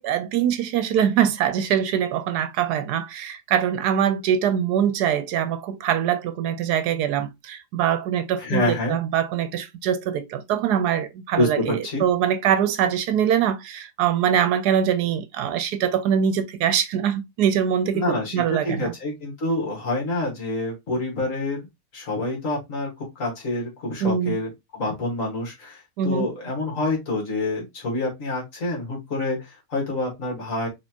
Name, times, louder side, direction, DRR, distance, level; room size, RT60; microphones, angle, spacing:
voice 1, 0.0-18.9 24.0-24.4 26.0-26.3, right 9 dB, 75° right, 1.1 m, -23 dB
voice 2, 8.4-9.0 11.3-12.0 17.9-21.7 21.9-30.7, left 2 dB, 50° left, 1.9 m, -27 dB
4.2 x 3.5 x 2.8 m
omnidirectional pair, 1.8 m